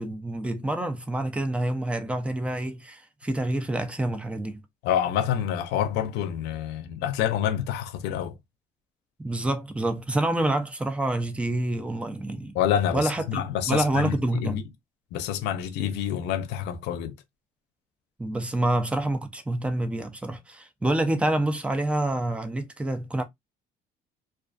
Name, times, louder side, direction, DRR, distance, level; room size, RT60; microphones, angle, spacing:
voice 1, 0.0-4.6 9.2-12.6 12.9-13.4 13.7-14.6 18.2-23.2, right 1 dB, 5° right, 0.5 m, -27 dB
voice 2, 4.8-8.4 12.6-14.6 15.1-17.1, left 10 dB, 85° left, 0.5 m, -27 dB
2.4 x 2.3 x 2.3 m
cardioid pair, 110°, 17 cm